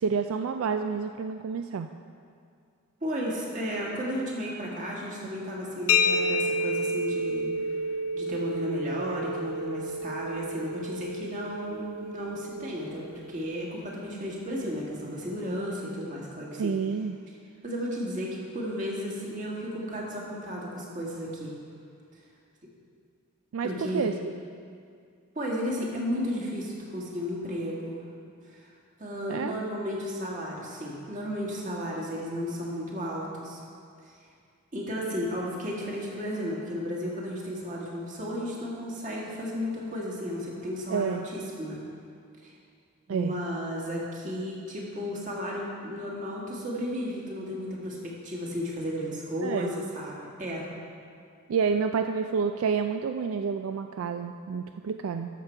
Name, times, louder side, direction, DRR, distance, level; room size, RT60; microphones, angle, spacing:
voice 1, 0.0-1.9 16.6-17.1 23.5-24.3 29.3-29.5 40.9-41.3 43.1-43.4 49.4-49.7 51.5-55.3, right 6 dB, 75° right, 7 dB, 0.3 m, -29 dB
voice 2, 3.0-7.8 8.1-16.7 17.6-21.5 23.6-24.1 25.4-28.0 28.5-28.6 29.0-33.6 34.7-41.8 42.4-42.5 43.1-50.7, equal, 40° right, -4 dB, 1.8 m, -33 dB
sound 1, 5.9-13.4, left 1 dB, 85° left, 0.7 m, -30 dB
12.5 x 6.7 x 4.5 m, 2.3 s
head